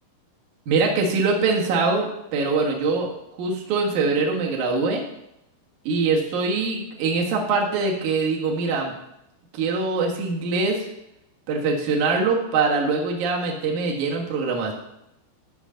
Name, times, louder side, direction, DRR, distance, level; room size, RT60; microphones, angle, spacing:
voice 1, 0.7-5.0 5.9-8.9 9.5-10.9 11.5-14.7, right 4 dB, 70° right, -1 dB, 1.9 m, -23 dB
14.0 x 5.7 x 3.8 m, 0.85 s
omnidirectional pair, 5.8 m